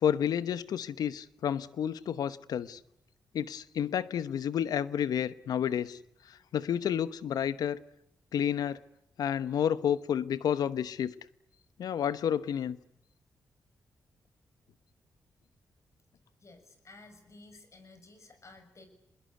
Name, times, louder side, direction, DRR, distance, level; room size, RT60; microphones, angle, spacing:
voice 1, 0.0-2.8 3.3-6.0 6.2-7.8 8.3-8.8 9.2-11.1 11.8-12.8, left 9 dB, 80° left, 15 dB, 1.0 m, -30 dB
voice 2, 16.4-18.9, left 2 dB, 50° left, 8 dB, 6.9 m, -54 dB
25.5 x 21.5 x 9.5 m, 0.80 s
supercardioid pair, 55°, 7 cm